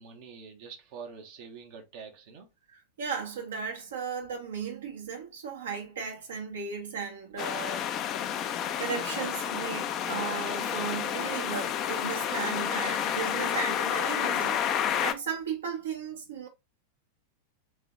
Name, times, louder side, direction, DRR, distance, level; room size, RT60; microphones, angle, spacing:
voice 1, 0.0-2.5, right 6 dB, 50° right, 1.1 m, -45 dB
voice 2, 3.0-7.9 8.8-16.5, right 6 dB, 65° right, 1.4 m, -36 dB
sound 1, 7.4-15.1, left 9 dB, 35° left, 0.6 m, -30 dB
3.8 x 3.2 x 3.9 m
figure-of-eight pair, 90°, 0 cm